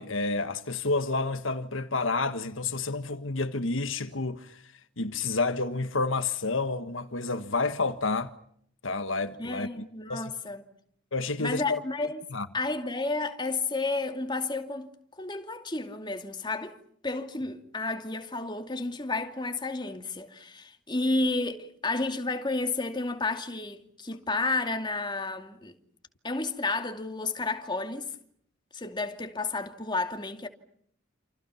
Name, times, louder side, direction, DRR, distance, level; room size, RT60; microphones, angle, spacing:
voice 1, 0.0-4.6 5.0-8.3 8.8-9.8 10.1-10.3 11.1-11.8 12.3-12.5, left 3 dB, 75° left, 1.6 m, -29 dB
voice 2, 9.4-10.6 11.4-12.2 12.5-14.9 15.2-16.8 17.0-25.7 26.2-28.1 28.7-30.5, left 3 dB, 20° left, 2.6 m, -31 dB
29.0 x 29.0 x 5.8 m
head